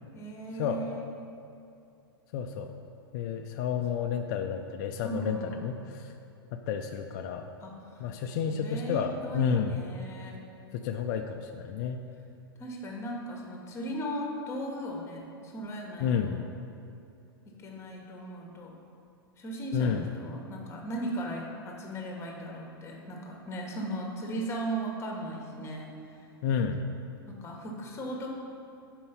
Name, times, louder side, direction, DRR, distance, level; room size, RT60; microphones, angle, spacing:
voice 1, 0.1-1.0 5.0-5.6 7.6-8.1 8.5-10.4 12.6-16.4 17.5-18.8 19.3-26.2 27.3-28.4, right 1 dB, 20° left, 0 dB, 1.2 m, -37 dB
voice 2, 2.3-2.7 3.1-6.1 6.5-7.5 8.0-9.8 10.7-12.0 16.0-16.4 19.7-20.1 26.4-26.8, left 7 dB, 50° left, 5 dB, 0.4 m, -31 dB
5.3 x 4.5 x 5.6 m, 2.6 s
hypercardioid pair, 105°, 13 cm